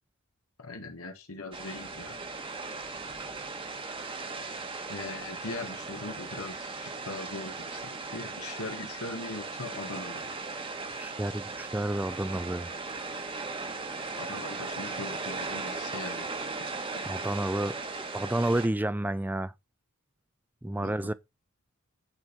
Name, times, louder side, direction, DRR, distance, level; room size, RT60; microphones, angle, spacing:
voice 1, 0.6-2.2 4.9-10.3 14.2-16.3 20.8-21.1, left 2 dB, 85° left, 1.5 m, -40 dB
sound 1, 1.5-18.7, right 3 dB, 25° right, 1.2 m, -37 dB
voice 2, 11.0-12.7 17.0-17.8 18.1-19.5 20.6-21.1, right 1 dB, 10° right, 0.4 m, -30 dB
9.7 x 4.5 x 5.2 m
head